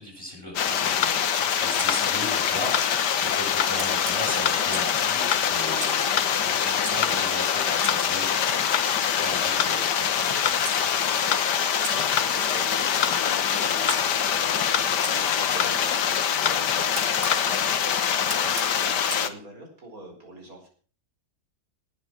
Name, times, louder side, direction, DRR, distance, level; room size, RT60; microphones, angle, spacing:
voice 1, 0.0-8.7 9.2-11.0, equal, 15° right, 0 dB, 7.4 m, -38 dB
sound 1, 0.6-19.3, left 8 dB, 90° left, 1.7 m, -24 dB
sound 2, 1.0-1.2 1.9-2.0 2.7-2.9 3.6-3.8 4.4-4.6 5.3-5.5 6.2-6.3 7.0-7.2 7.9-8.0 8.7-8.9 9.6-9.8 10.4-10.6 11.3-11.5 12.2-12.3 13.0-13.2 13.9-14.0 14.7-14.9 15.6-15.8 16.4-16.6 17.3-17.4, left 8 dB, 70° left, 1.5 m, -27 dB
Camera, 1.8-3.0 3.8-5.0 5.8-6.9 7.8-10.8 11.8-14.0 15.0-17.4 18.3-19.3, right 5 dB, 80° right, 2.6 m, -41 dB
voice 2, 6.7-7.1 11.9-20.7, right 1 dB, 55° right, 2 dB, 4.9 m, -44 dB
18.5 x 7.8 x 6.1 m, 0.43 s
omnidirectional pair, 1.8 m